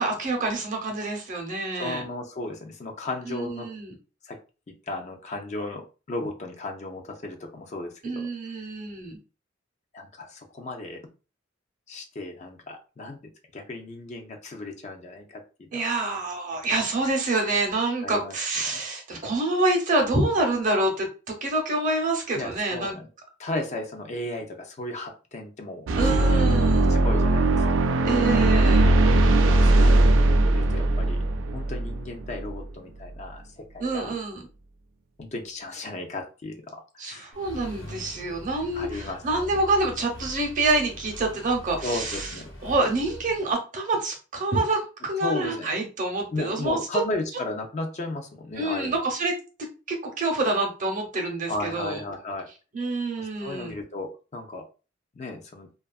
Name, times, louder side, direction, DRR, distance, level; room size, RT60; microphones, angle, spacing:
voice 1, 0.0-2.0 3.3-3.9 8.0-9.2 15.7-23.0 26.0-27.0 28.0-28.9 33.8-34.4 37.0-42.3 42.6-46.8 48.6-49.3 49.9-52.0 52.7-53.7, right 2 dB, 45° right, 2 dB, 0.7 m, -27 dB
voice 2, 1.7-3.7 4.2-4.4 4.9-8.5 9.9-11.0 11.9-13.2 13.5-15.8 18.0-18.3 18.7-18.8 22.3-23.1 23.4-26.4 26.9-27.9 29.5-31.2 31.5-34.1 35.2-37.3 38.7-39.2 41.8-42.5 45.2-45.7 46.3-49.0 51.5-52.5 53.2-54.6 55.1-55.7, left 2 dB, 40° left, 3 dB, 0.4 m, -35 dB
sound 1, 25.9-32.5, right 2 dB, 90° right, 0.4 m, -19 dB
Accelerating revving vroom, 37.3-43.5, left 1 dB, 80° left, 0.9 m, -42 dB
2.6 x 2.3 x 2.3 m, 0.34 s
head